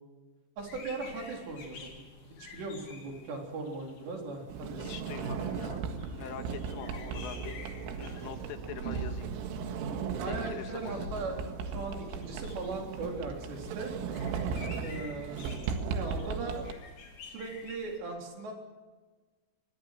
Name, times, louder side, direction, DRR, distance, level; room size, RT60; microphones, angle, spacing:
sound 1, 0.6-18.0, left 4 dB, 50° left, 5.1 m, -50 dB
voice 1, 0.6-2.1 2.4-5.0 10.2-11.4 11.6-14.0 14.8-15.4 15.9-16.6 17.2-18.5, right 3 dB, 60° right, 1 dB, 5.8 m, -38 dB
Sliding door, 4.5-16.7, right 6 dB, 75° right, 4.2 m, -37 dB
voice 2, 4.8-5.8 6.2-7.6 7.9-9.3 10.3-11.1, left 9 dB, 75° left, 7 dB, 4.0 m, -44 dB
26.0 x 23.0 x 6.7 m, 1.3 s
omnidirectional pair, 5.9 m